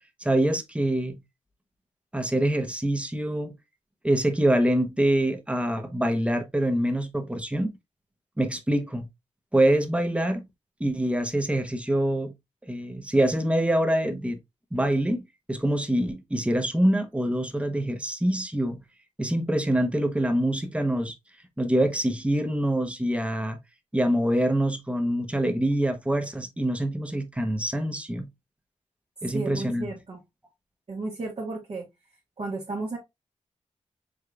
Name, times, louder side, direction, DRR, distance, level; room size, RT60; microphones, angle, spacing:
voice 1, 0.2-1.2 2.1-3.5 4.0-7.7 8.4-9.0 9.5-10.4 10.8-12.3 12.7-14.4 14.7-15.2 15.5-18.8 19.2-21.1 21.6-23.6 23.9-28.3 29.2-29.9, right 1 dB, 10° right, 0.9 m, -25 dB
voice 2, 29.3-30.2 30.9-31.8 32.4-33.0, right 3 dB, 50° right, 1.3 m, -33 dB
4.9 x 3.6 x 2.3 m
wide cardioid pair, 85°, 12 cm